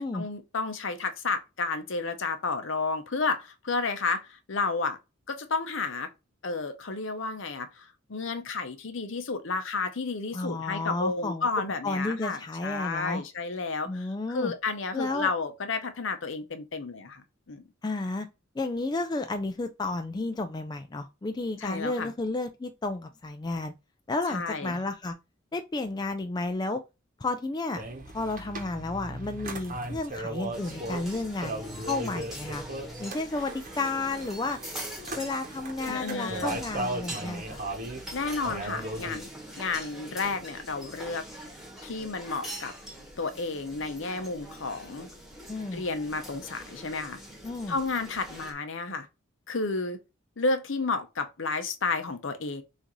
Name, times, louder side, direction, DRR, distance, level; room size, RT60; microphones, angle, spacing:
voice 1, 0.0-5.0 5.3-6.1 6.4-17.7 21.6-22.1 24.3-24.8 35.8-36.6 38.1-39.3 39.6-41.2 41.8-42.7 43.2-45.1 45.7-47.2 47.7-49.1 49.5-50.0 50.4-52.6, left 4 dB, 65° left, 0.8 m, -31 dB
voice 2, 10.3-11.5 11.8-13.2 13.9-14.5 14.9-15.3 17.8-18.3 18.6-23.7 24.1-25.1 25.5-26.8 27.2-27.8 28.1-32.6 33.0-34.6 35.2-37.6 45.5-45.8 47.4-47.8, left 2 dB, 20° left, 0.3 m, -32 dB
sound 1, 27.7-39.2, right 1 dB, 40° right, 1.0 m, -37 dB
sound 2, 30.5-48.5, equal, ahead, 1.3 m, -43 dB
6.2 x 2.6 x 3.1 m
head